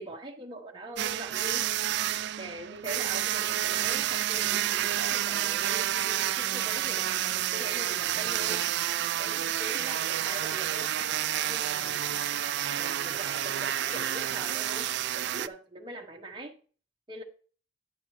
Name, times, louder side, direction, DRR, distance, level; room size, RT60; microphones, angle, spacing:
voice 1, 0.0-1.7 2.4-8.6 9.2-10.9 11.4-12.1 12.7-16.5 17.1-17.2, right 1 dB, 25° right, 1.1 m, -42 dB
sound 1, 1.0-15.5, right 12 dB, 60° right, 0.4 m, -29 dB
Chatter, 9.5-14.8, left 3 dB, 35° left, 1.0 m, -47 dB
10.0 x 8.9 x 3.2 m
head